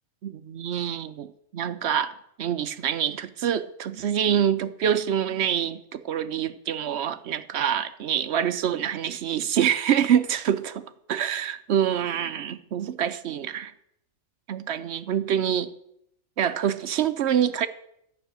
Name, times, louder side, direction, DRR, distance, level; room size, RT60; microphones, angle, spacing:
voice 1, 0.2-10.8 11.1-13.7 14.5-15.7 16.4-17.7, right 9 dB, 65° right, 12 dB, 0.8 m, -26 dB
11.5 x 6.1 x 8.7 m, 0.77 s
omnidirectional pair, 1.4 m